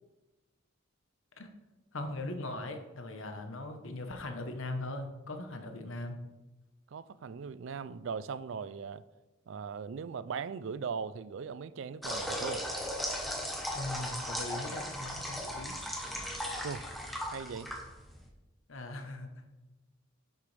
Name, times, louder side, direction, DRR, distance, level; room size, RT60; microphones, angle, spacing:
voice 1, 1.9-6.2 13.7-15.8 18.7-19.3, left 2 dB, 75° left, 1.1 m, -40 dB
voice 2, 6.9-9.0 9.5-12.6 16.6-16.9 17.3-17.7, right 6 dB, 65° right, 0.4 m, -39 dB
sound 1, 12.0-18.3, equal, ahead, 1.1 m, -37 dB
10.0 x 6.8 x 3.4 m
head